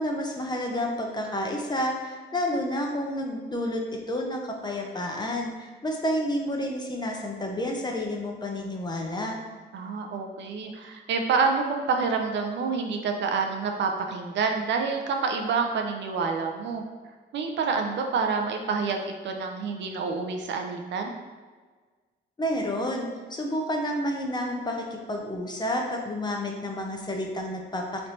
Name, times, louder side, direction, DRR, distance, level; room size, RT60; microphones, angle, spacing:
voice 1, 0.0-9.4 22.4-28.1, left 1 dB, 20° left, 1 dB, 0.6 m, -30 dB
voice 2, 9.7-16.8 17.3-19.0 19.2-21.1, right 5 dB, 65° right, 3 dB, 0.6 m, -27 dB
3.3 x 2.6 x 4.3 m, 1.4 s
cardioid pair, 90°, 20 cm